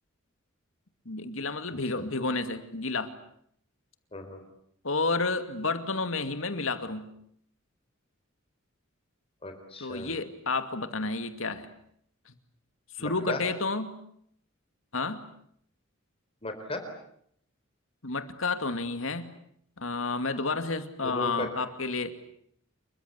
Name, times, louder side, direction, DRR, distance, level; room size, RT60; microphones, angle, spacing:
voice 1, 1.1-3.1 4.8-7.1 9.8-11.7 12.3-12.4 13.0-13.9 14.9-15.2 18.0-19.3 19.8-22.1, left 3 dB, 70° left, 9 dB, 2.5 m, -31 dB
voice 2, 9.4-10.1 13.0-13.4 16.4-16.9 21.0-21.5, left 2 dB, 30° left, 6 dB, 4.4 m, -36 dB
28.0 x 23.5 x 8.3 m, 0.69 s
head